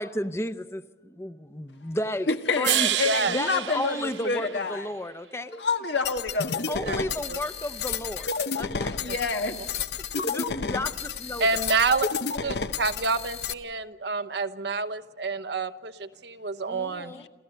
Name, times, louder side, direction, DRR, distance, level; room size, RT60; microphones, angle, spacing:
voice 1, 0.0-2.3 2.6-2.9 3.3-5.6 6.7-9.0 10.2-11.6 16.6-17.3, left 1 dB, 15° left, 11 dB, 0.7 m, -33 dB
voice 2, 2.3-4.9 5.6-6.7 8.8-9.6 10.5-10.7 17.1-17.3, left 4 dB, 85° left, 6 dB, 1.6 m, -28 dB
sound 1, 2.6-5.0, right 12 dB, 90° right, 0.6 m, -29 dB
voice 3, 3.0-3.4 6.9-7.0 7.3-7.4 11.4-17.1, right 4 dB, 75° right, 12 dB, 1.0 m, -28 dB
sound 2, 6.1-13.5, left 5 dB, 70° left, 0.8 m, -31 dB
27.5 x 14.5 x 8.0 m, 1.3 s
head